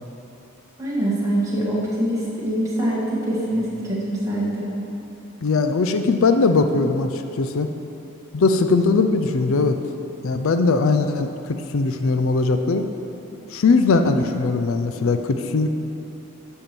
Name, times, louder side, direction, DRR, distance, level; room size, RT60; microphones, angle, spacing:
voice 1, 0.8-4.7, right 1 dB, 15° right, -7 dB, 1.8 m, -24 dB
voice 2, 5.4-7.7 8.3-9.8 10.2-12.9 13.5-15.7, left 3 dB, 70° left, 7 dB, 0.4 m, -20 dB
10.5 x 4.5 x 7.0 m, 2.8 s
head